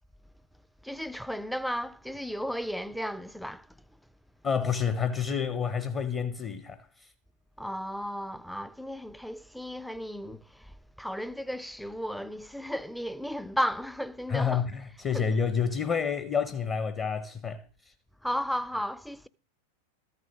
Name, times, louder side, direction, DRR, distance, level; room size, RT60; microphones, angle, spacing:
voice 1, 0.8-3.7 7.6-14.6 15.1-15.3 18.2-19.3, equal, ahead, 0.4 m, -34 dB
voice 2, 4.4-7.1 14.3-17.6, left 6 dB, 25° left, 0.8 m, -29 dB
14.0 x 9.5 x 3.7 m
figure-of-eight pair, 90°, 0 cm